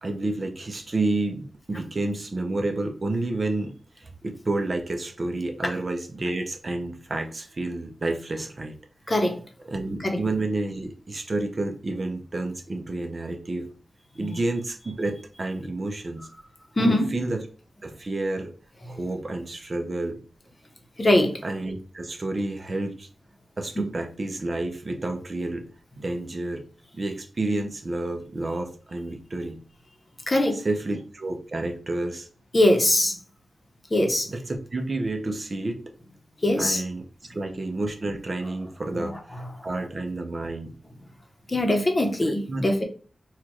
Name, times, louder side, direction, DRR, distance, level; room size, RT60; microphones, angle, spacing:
voice 1, 0.0-8.7 9.7-13.7 14.1-16.3 16.8-17.4 17.8-18.5 18.9-20.2 21.4-23.1 23.6-25.7 26.0-26.6 26.9-29.6 30.6-32.3 34.3-35.8 36.6-37.0 37.3-40.7 42.5-42.6, right 2 dB, 40° right, 4 dB, 0.7 m, -30 dB
voice 2, 9.1-9.4 10.0-10.2 14.2-14.4 16.8-17.1 21.0-21.4 23.8-23.9 30.3-30.6 32.5-33.2 33.9-34.3 36.4-36.8 38.9-39.1 41.5-42.8, left 1 dB, 30° left, 4 dB, 0.9 m, -22 dB
4.4 x 2.4 x 4.5 m, 0.40 s
wide cardioid pair, 135°, 0 cm